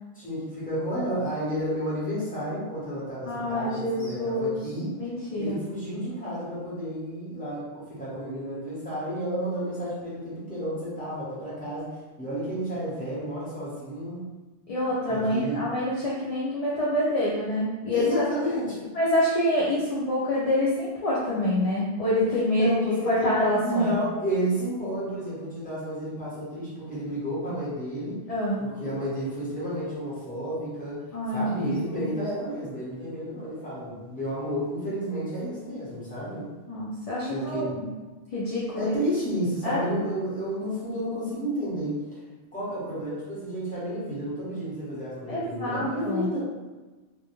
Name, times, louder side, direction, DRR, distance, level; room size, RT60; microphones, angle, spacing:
voice 1, 0.1-4.9 5.3-11.9 12.2-14.2 15.1-15.7 17.9-18.9 22.5-23.3 23.6-28.2 28.6-31.0 31.3-36.5 37.3-37.8 38.8-42.2 42.5-46.4, equal, 10° left, -10 dB, 0.9 m, -31 dB
voice 2, 3.2-4.6 5.0-5.6 14.7-18.1 18.9-22.7 23.1-23.9 28.3-28.7 31.1-32.1 36.7-37.9 38.3-38.9 39.6-39.8 45.3-46.3, left 1 dB, 55° left, -7 dB, 0.4 m, -26 dB
2.2 x 2.1 x 2.9 m, 1.2 s
omnidirectional pair, 1.0 m